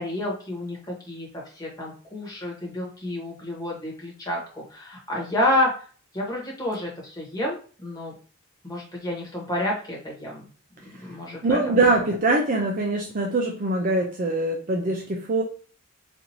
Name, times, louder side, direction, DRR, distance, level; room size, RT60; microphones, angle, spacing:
voice 1, 0.0-5.8 6.1-8.1 8.6-10.5 10.8-11.8 12.1-12.2, left 1 dB, 15° left, -3 dB, 1.2 m, -29 dB
voice 2, 11.4-15.4, right 2 dB, 40° right, 1 dB, 0.4 m, -23 dB
4.3 x 2.6 x 2.7 m, 0.41 s
head